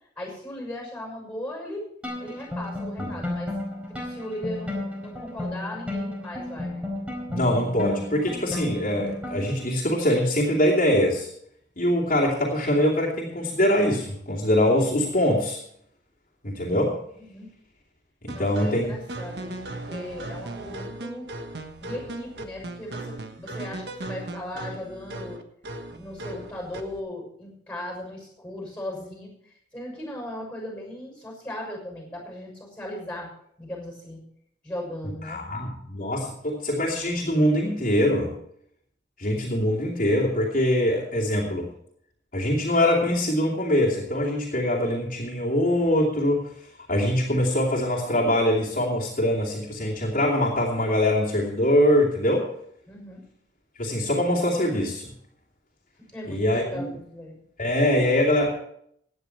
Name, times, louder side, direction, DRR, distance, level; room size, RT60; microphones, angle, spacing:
voice 1, 0.2-1.9 2.2-3.5 3.9-6.9 17.1-17.5 18.3-21.3 21.8-25.4 25.9-33.3 33.6-34.2 34.6-35.4 52.9-53.2 56.1-57.4, left 1 dB, 10° left, 0 dB, 6.3 m, -37 dB
sound 1, 2.0-9.7, left 2 dB, 10° right, 4.4 m, -33 dB
voice 2, 7.3-11.3 11.8-15.6 16.4-17.0 18.2-19.0 35.3-38.3 39.2-41.7 42.3-46.5 46.9-52.5 53.8-55.1 56.3-56.9 57.6-58.5, left 1 dB, 50° left, -4 dB, 2.6 m, -23 dB
sound 2, 18.3-27.0, right 2 dB, 70° right, 1.3 m, -37 dB
17.0 x 9.7 x 4.6 m, 0.69 s
head